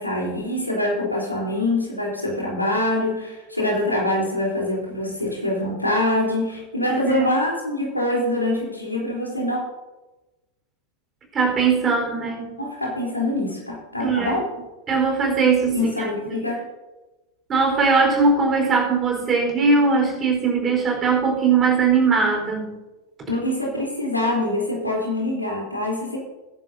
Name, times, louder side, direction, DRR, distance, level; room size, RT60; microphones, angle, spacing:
voice 1, 0.0-9.6 12.6-14.4 15.7-16.6 23.3-26.2, left 1 dB, 85° left, -3 dB, 3.6 m, -24 dB
voice 2, 6.8-7.2 11.3-12.6 14.0-14.4 14.9-16.4 17.5-22.8, right 4 dB, 25° right, 1 dB, 4.3 m, -20 dB
21.0 x 10.5 x 2.7 m, 1.1 s
figure-of-eight pair, 90°, 0 cm